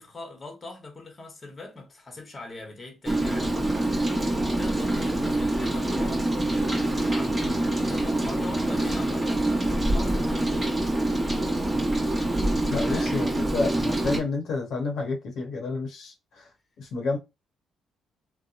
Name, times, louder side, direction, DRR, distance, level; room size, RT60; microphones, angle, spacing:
voice 1, 0.0-3.5 4.2-7.5 7.9-10.7 12.8-13.1, left 2 dB, 30° left, 0.9 m, -41 dB
Rain, 3.1-14.2, right 1 dB, 15° right, 0.9 m, -25 dB
voice 2, 12.7-13.3 13.5-16.5 16.8-17.2, left 3 dB, 70° left, 0.8 m, -29 dB
2.8 x 2.0 x 2.4 m
cardioid pair, 90°, 0 cm